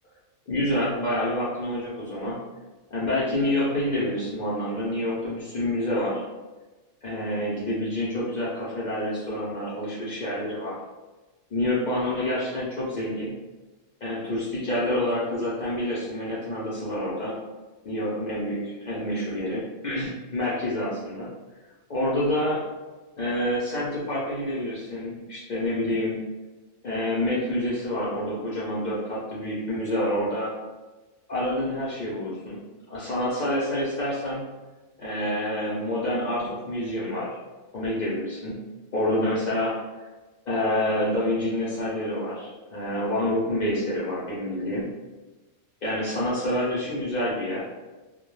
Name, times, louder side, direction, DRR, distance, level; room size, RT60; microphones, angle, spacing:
voice 1, 0.5-2.4 2.9-6.2 7.0-10.7 11.5-13.3 14.0-17.3 17.8-21.3 21.9-22.6 23.2-26.1 26.8-30.5 31.3-32.6 32.9-34.4 35.0-37.3 37.7-38.6 38.9-39.8 40.5-44.9 45.8-47.6, left 1 dB, 60° left, -8 dB, 0.5 m, -27 dB
2.1 x 2.1 x 3.0 m, 1.2 s
omnidirectional pair, 1.3 m